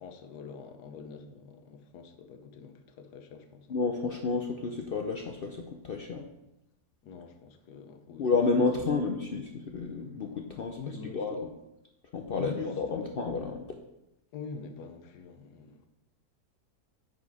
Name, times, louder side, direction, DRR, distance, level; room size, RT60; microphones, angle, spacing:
voice 1, 0.0-3.7 7.0-8.3 10.8-11.4 12.4-12.6 12.9-13.1 14.3-15.9, left 5 dB, 80° left, 7 dB, 1.4 m, -45 dB
voice 2, 3.7-6.3 8.2-10.8 11.1-11.5 12.1-13.8, left 4 dB, 65° left, 3 dB, 0.5 m, -30 dB
9.4 x 4.8 x 4.7 m, 0.91 s
omnidirectional pair, 1.7 m